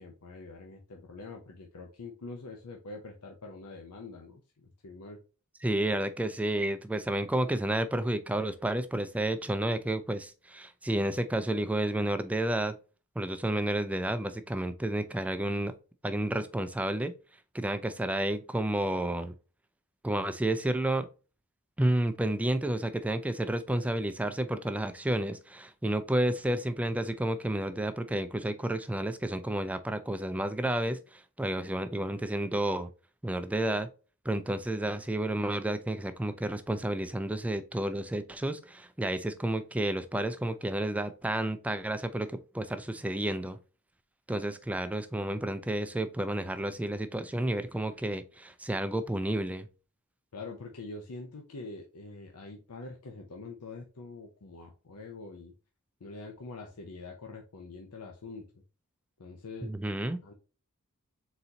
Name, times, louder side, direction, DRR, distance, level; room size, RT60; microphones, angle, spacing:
voice 1, 0.0-5.2 50.3-55.5 56.0-58.5 59.2-59.7 60.2-60.3, left 3 dB, 80° left, 0.7 m, -45 dB
voice 2, 5.6-12.7 13.2-15.7 16.0-17.1 17.5-19.3 20.0-21.1 21.8-32.9 33.2-33.9 34.3-43.6 44.3-49.7 59.6-60.2, right 1 dB, 5° right, 0.3 m, -31 dB
4.2 x 3.9 x 2.8 m
head